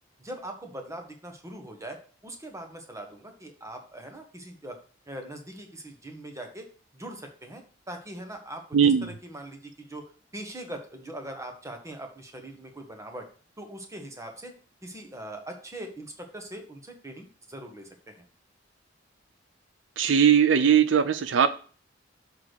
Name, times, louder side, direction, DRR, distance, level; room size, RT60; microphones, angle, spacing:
voice 1, 0.2-4.8 5.1-6.7 6.9-13.3 13.6-14.5 14.8-18.2, right 1 dB, 15° right, 4 dB, 1.3 m, -41 dB
voice 2, 8.7-9.1 20.0-21.5, right 7 dB, 80° right, 11 dB, 0.5 m, -19 dB
6.5 x 3.6 x 6.2 m, 0.40 s
head